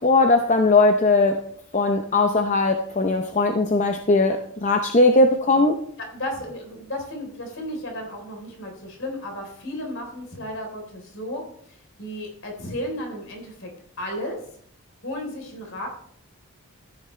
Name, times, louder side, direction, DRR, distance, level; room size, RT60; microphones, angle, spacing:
voice 1, 0.0-1.4 1.7-5.8, left 2 dB, 30° left, 5 dB, 0.6 m, -19 dB
voice 2, 6.0-14.4 15.0-15.9, left 1 dB, 60° left, 2 dB, 3.9 m, -34 dB
14.0 x 10.0 x 3.3 m, 0.63 s
head